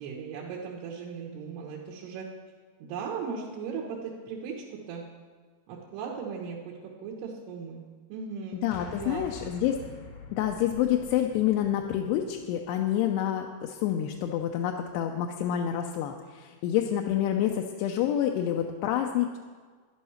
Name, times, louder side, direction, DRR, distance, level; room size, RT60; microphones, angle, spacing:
voice 1, 0.0-2.3 2.8-5.1 5.7-7.8 8.1-8.6 9.0-9.5, right 6 dB, 80° right, -3 dB, 3.3 m, -37 dB
voice 2, 8.6-9.8 10.3-19.4, left 11 dB, 85° left, 2 dB, 2.8 m, -28 dB
sound 1, 8.7-13.1, left 4 dB, 70° left, 1.7 m, -46 dB
12.0 x 11.0 x 5.7 m, 1.5 s
omnidirectional pair, 4.8 m